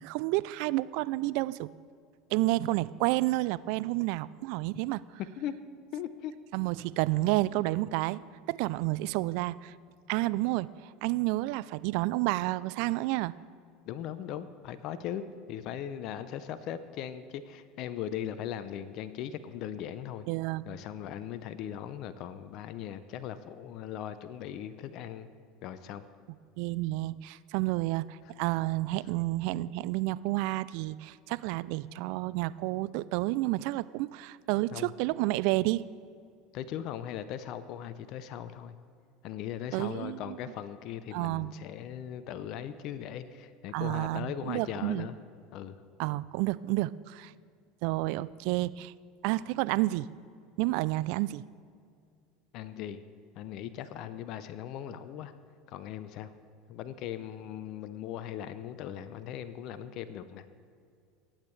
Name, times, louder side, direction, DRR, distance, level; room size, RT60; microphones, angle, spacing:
voice 1, 0.0-1.7 2.3-5.0 6.5-8.2 8.5-9.7 10.1-13.3 20.3-20.7 26.6-35.8 39.7-40.4 41.1-41.5 43.7-45.1 46.0-47.3 47.8-48.9 49.2-50.1 50.6-51.4, right 19 dB, 65° right, 18 dB, 0.3 m, -30 dB
voice 2, 5.9-6.3 13.9-20.3 20.7-25.3 25.6-26.0 34.7-34.9 36.5-38.7 39.2-45.2 45.5-45.8 52.5-53.0 53.4-55.3 55.7-56.3 56.7-60.4, left 10 dB, 55° left, 12 dB, 0.6 m, -39 dB
19.0 x 8.8 x 3.3 m, 2.3 s
hypercardioid pair, 85°, 0 cm